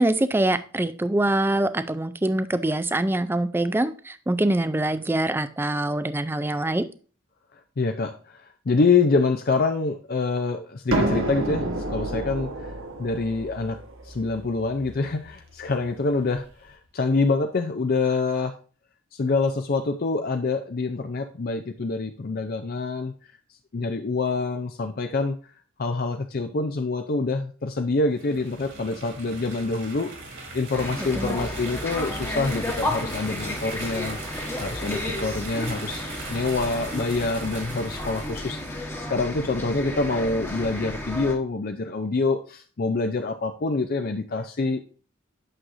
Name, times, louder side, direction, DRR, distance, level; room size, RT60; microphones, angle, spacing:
voice 1, 0.0-6.9 31.2-31.4, right 1 dB, 10° right, 0.4 m, -24 dB
voice 2, 7.8-12.7 13.0-13.8 14.0-18.5 19.1-23.1 23.7-25.4 25.8-44.8, left 3 dB, 45° left, 0.5 m, -26 dB
sound 1, 10.9-16.5, right 1 dB, 80° right, 1.3 m, -30 dB
sound 2, 28.1-38.9, right 3 dB, 60° right, 2.2 m, -40 dB
sound 3, 30.7-41.3, left 1 dB, 10° left, 1.1 m, -32 dB
8.8 x 6.3 x 2.6 m
head